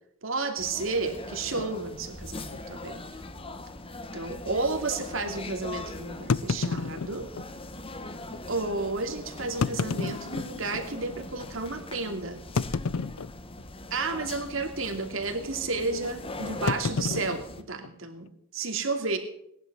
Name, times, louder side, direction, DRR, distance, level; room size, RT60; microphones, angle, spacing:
voice 1, 0.2-3.0 4.1-7.3 8.5-12.4 13.9-18.3 18.5-19.2, right 3 dB, 75° right, 5 dB, 2.7 m, -32 dB
sound 1, 0.6-17.6, left 2 dB, 25° left, 1.2 m, -41 dB
sound 2, 1.6-1.7 2.5-2.6 2.9-3.0 3.6-3.7 6.3-7.5 8.3-8.4 9.4-10.9 11.4-11.5 12.6-13.6 13.9-14.3 14.5-14.9 16.7-18.3, left 4 dB, 80° left, 0.5 m, -31 dB
19.0 x 11.0 x 6.2 m, 0.72 s
head